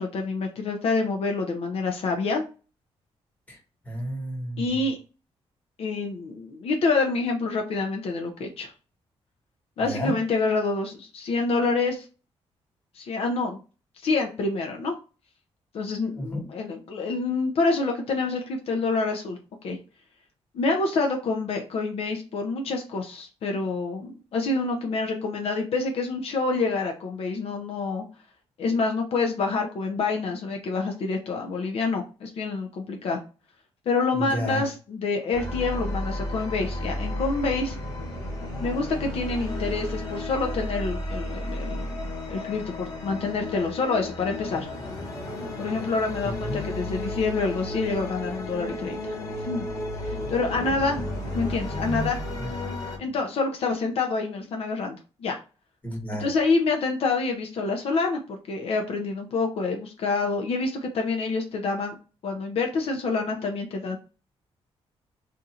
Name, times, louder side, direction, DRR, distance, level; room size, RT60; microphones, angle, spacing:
voice 1, 0.0-2.4 4.6-5.0 5.8-8.7 9.8-12.1 12.9-13.6 14.0-14.9 15.7-19.8 20.5-28.0 28.6-33.2 33.9-37.8 38.6-44.7 45.6-49.1 49.4-49.7 50.0-51.0 51.3-52.2 53.0-55.4 56.2-62.0 62.2-64.0, left 3 dB, 65° left, 3 dB, 0.6 m, -27 dB
voice 2, 3.8-4.8 9.8-10.1 16.2-16.5 34.1-34.6 46.2-46.6 51.7-52.1 52.4-52.5 53.1-53.2 55.8-56.3, equal, 15° left, -1 dB, 1.3 m, -32 dB
sound 1, 35.3-53.0, left 1 dB, 35° left, 1.3 m, -33 dB
2.6 x 2.5 x 4.1 m, 0.34 s
cardioid pair, 145°, 11 cm